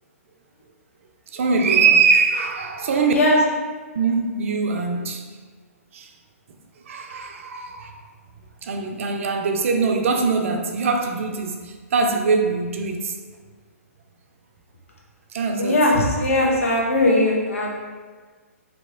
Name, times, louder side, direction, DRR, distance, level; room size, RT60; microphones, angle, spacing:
voice 1, 1.3-3.1 4.0-5.2 5.9-6.1 6.9-7.9 8.6-13.1 15.3-15.7, right 5 dB, 60° right, 4 dB, 0.5 m, -22 dB
voice 2, 15.6-17.8, left 1 dB, 65° left, -2 dB, 1.0 m, -19 dB
3.0 x 2.8 x 3.7 m, 1.5 s
hypercardioid pair, 130°, 8 cm